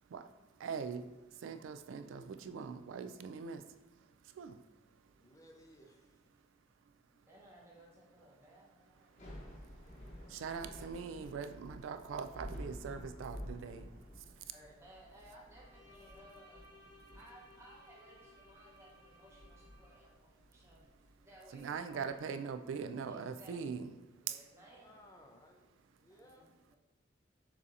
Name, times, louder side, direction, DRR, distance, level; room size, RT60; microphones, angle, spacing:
voice 1, 0.0-5.4 6.3-6.4 6.9-7.3 9.1-14.5 17.1-17.2 21.5-23.9 24.2-24.4, right 6 dB, 75° right, 9 dB, 0.3 m, -43 dB
voice 2, 5.1-6.2 24.8-25.7 26.0-26.5, equal, 15° left, 2 dB, 0.4 m, -60 dB
voice 3, 7.1-10.2 14.5-16.7 17.1-20.8 21.2-22.1 23.0-23.8 24.2-25.0 26.1-26.8, right 1 dB, 15° right, -5 dB, 0.8 m, -60 dB
Thunder / Rain, 9.0-22.2, equal, 40° left, 0.9 m, -52 dB
Bowed string instrument, 15.5-20.1, left 1 dB, 70° left, 1.3 m, -61 dB
6.9 x 2.8 x 2.5 m, 1.1 s
head